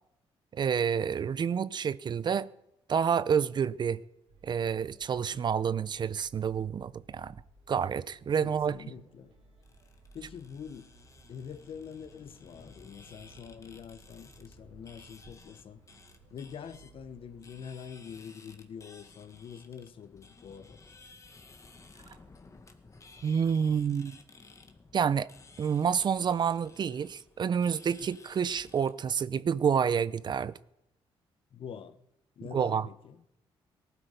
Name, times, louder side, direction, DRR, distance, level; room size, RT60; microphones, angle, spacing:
voice 1, 0.5-2.5 2.9-4.0 4.4-7.4 7.7-8.8 23.2-24.2 24.9-25.3 25.6-30.5 32.5-32.9, right 7 dB, 45° right, 0.6 m, -28 dB
sound 1, 4.3-17.7, right 3 dB, 85° right, 4.4 m, -58 dB
voice 2, 8.4-9.3 10.1-10.9 11.3-15.8 16.3-20.8 28.0-28.1 31.5-32.0 32.4-33.2, left 7 dB, 60° left, 1.2 m, -45 dB
sound 2, 9.6-28.9, left 3 dB, 30° left, 1.8 m, -56 dB
19.0 x 12.0 x 5.2 m
cardioid pair, 100°, 10 cm